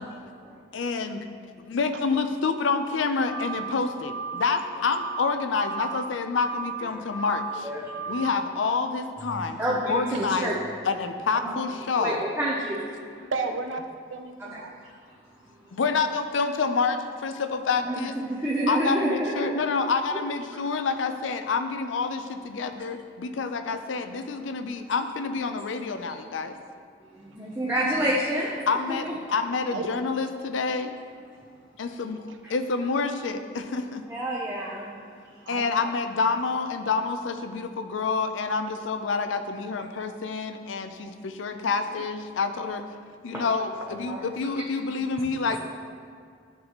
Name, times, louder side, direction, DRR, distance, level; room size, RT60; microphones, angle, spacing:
voice 1, 0.7-1.3 1.6-7.7 8.1-10.5 10.8-12.2 15.7-18.2 18.7-26.6 28.7-30.9 31.8-34.0 35.5-42.8 43.2-45.6, left 4 dB, 85° left, 8 dB, 0.5 m, -28 dB
sound 1, 3.2-3.7 4.0-4.5 4.8-5.3 5.5-6.0 6.3-6.8 7.1-7.6 7.9-8.4, right 5 dB, 10° left, 0.9 m, -35 dB
voice 2, 7.6-8.2 9.3-10.6 11.4-11.6 12.0-12.9 13.2-13.3 14.4-14.6 17.8-19.6 27.1-28.6 28.9-29.1 34.1-34.9 43.3-43.4 44.0-44.2 44.6-44.7, right 1 dB, 10° right, -5 dB, 0.6 m, -29 dB
voice 3, 13.3-14.7 23.7-23.8 29.1-29.2 29.7-29.9 32.3-32.4 35.5-35.9, right 3 dB, 90° right, 6 dB, 0.6 m, -33 dB
12.0 x 4.0 x 3.0 m, 2.2 s
head